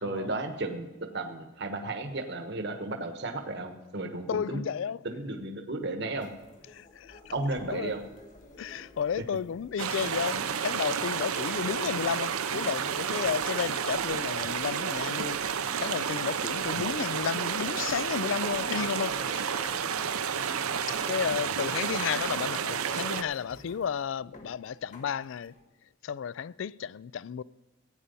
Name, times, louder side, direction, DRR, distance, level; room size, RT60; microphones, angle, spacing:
voice 1, 0.0-4.6 5.0-6.3 7.3-8.0 16.8-16.9, right 2 dB, 50° right, 1.1 m, -34 dB
voice 2, 4.3-5.0 6.7-7.2 7.6-7.9 8.6-19.7 20.9-25.5 26.0-27.4, left 7 dB, 60° left, 0.3 m, -33 dB
sound 1, 6.1-25.6, left 1 dB, 35° left, 1.6 m, -51 dB
sound 2, 9.8-23.2, right 7 dB, 80° right, 0.7 m, -31 dB
15.5 x 8.8 x 5.4 m
head